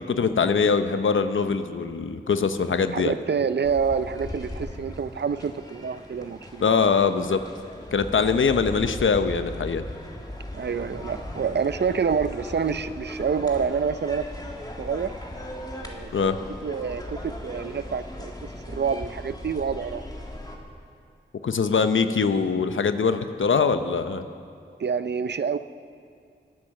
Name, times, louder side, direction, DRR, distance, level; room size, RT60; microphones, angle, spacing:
voice 1, 0.0-3.2 6.6-7.4 7.9-9.8 16.1-16.4 21.4-24.3, left 5 dB, 90° left, 10 dB, 0.7 m, -23 dB
voice 2, 2.9-6.6 10.5-14.3 14.8-15.1 15.8-16.1 16.6-18.3 18.7-20.0 24.8-25.6, right 6 dB, 60° right, 13 dB, 0.5 m, -27 dB
sound 1, 3.6-20.6, left 1 dB, 20° left, 2.0 m, -38 dB
22.5 x 8.8 x 6.5 m, 2.4 s
wide cardioid pair, 55°, 20 cm